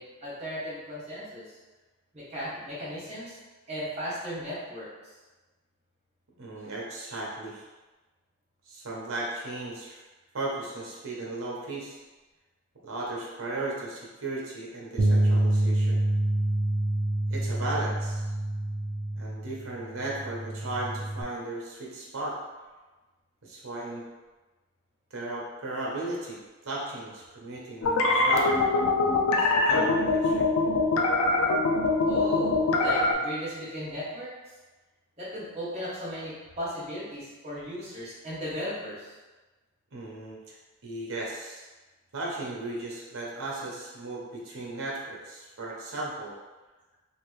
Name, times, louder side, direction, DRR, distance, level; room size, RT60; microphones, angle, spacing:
voice 1, 0.0-1.6 2.1-3.4 3.7-5.1 32.0-34.3 35.2-39.1, equal, 30° right, -10 dB, 1.2 m, -36 dB
voice 2, 6.4-7.6 8.6-10.0 10.3-12.0 12.8-16.0 17.3-18.3 19.1-22.4 23.4-24.1 25.1-26.4 26.6-28.6 29.4-30.5 39.9-40.5 40.8-41.7 42.1-46.3, right 2 dB, 70° right, -4 dB, 0.8 m, -36 dB
Bass guitar, 15.0-21.2, right 1 dB, 50° right, 0.3 m, -27 dB
sound 1, 27.8-33.1, left 3 dB, 85° left, 0.4 m, -23 dB
2.9 x 2.6 x 3.1 m, 1.2 s
head